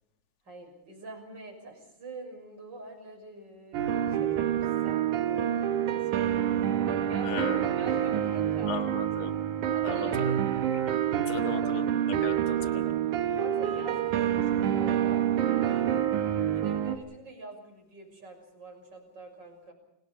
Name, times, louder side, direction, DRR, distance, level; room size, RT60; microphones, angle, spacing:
voice 1, 0.4-8.8 9.7-10.8 13.3-15.3 15.5-16.0 16.5-19.7, right 2 dB, 30° right, 3 dB, 6.8 m, -46 dB
sound 1, 3.7-17.0, right 10 dB, 70° right, 2.7 m, -27 dB
voice 2, 7.2-7.6 8.7-9.3 9.8-10.1 10.7-12.9, left 5 dB, 45° left, 5 dB, 2.1 m, -38 dB
29.5 x 19.5 x 5.3 m, 0.84 s
omnidirectional pair, 3.8 m